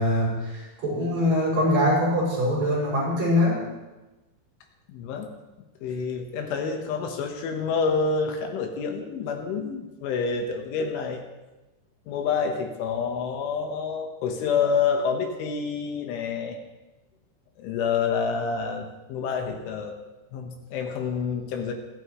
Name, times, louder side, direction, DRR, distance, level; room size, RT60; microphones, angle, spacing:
voice 1, 0.0-3.6, left 1 dB, 35° right, -7 dB, 7.8 m, -23 dB
voice 2, 4.9-5.3 5.8-11.2 12.1-16.6 17.6-19.9 20.3-21.7, left 5 dB, 80° left, 4 dB, 3.7 m, -28 dB
26.0 x 12.0 x 3.2 m, 1.1 s
omnidirectional pair, 5.6 m